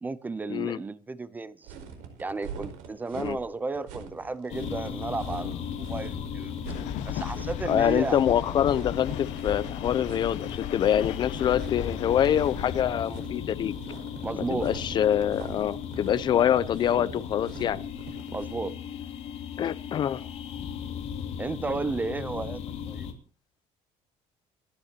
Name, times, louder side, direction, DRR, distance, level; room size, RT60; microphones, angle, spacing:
voice 1, 0.0-1.7 2.2-6.5 7.0-8.2 14.2-14.8 18.3-18.8 21.4-22.6 22.9-23.1, right 3 dB, 15° right, 0.5 m, -33 dB
sound 1, 1.6-18.7, right 6 dB, 80° right, 4.6 m, -44 dB
sound 2, 4.5-23.1, left 8 dB, 55° left, 2.9 m, -37 dB
sound 3, 6.6-12.8, left 10 dB, 70° left, 1.3 m, -36 dB
voice 2, 7.6-13.7 14.4-17.8 19.6-20.2, left 10 dB, 35° left, 0.6 m, -25 dB
26.5 x 10.0 x 2.9 m
cardioid pair, 170°, 13 cm